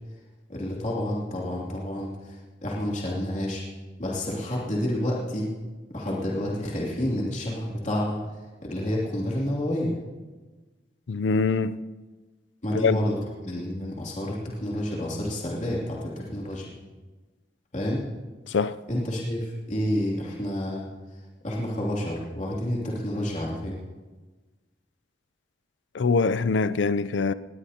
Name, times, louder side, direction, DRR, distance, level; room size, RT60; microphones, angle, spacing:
voice 1, 0.5-2.3 2.6-3.6 4.0-5.5 5.9-8.2 8.6-9.9 12.6-16.7 17.7-18.0 18.9-20.9 21.4-23.8, left 1 dB, 40° left, 2.8 m, -29 dB
voice 2, 11.1-11.8 12.7-13.0 18.5-18.8 25.9-27.3, left 4 dB, 90° left, 0.5 m, -23 dB
19.0 x 19.0 x 2.9 m
head